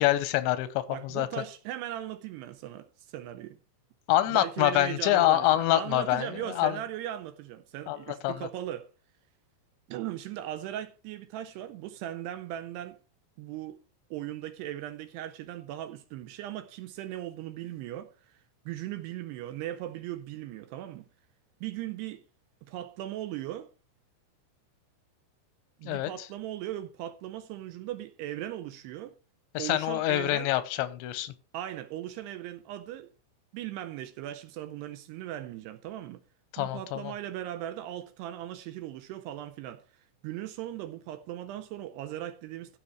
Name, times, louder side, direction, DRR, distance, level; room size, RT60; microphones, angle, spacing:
voice 1, 0.0-1.3 4.1-6.3 6.6-6.7 7.9-8.0 8.2-8.4 25.9-26.1 29.5-31.3 36.5-37.1, left 15 dB, 85° left, 3.0 m, -26 dB
voice 2, 0.9-3.6 4.3-8.9 9.9-13.0 13.4-13.8 14.1-18.4 18.7-21.1 21.6-22.2 22.6-23.7 25.8-29.2 29.6-30.5 31.5-33.1 33.5-36.2 36.6-42.8, right 12 dB, 80° right, 2.5 m, -38 dB
15.0 x 5.6 x 4.5 m
omnidirectional pair, 5.2 m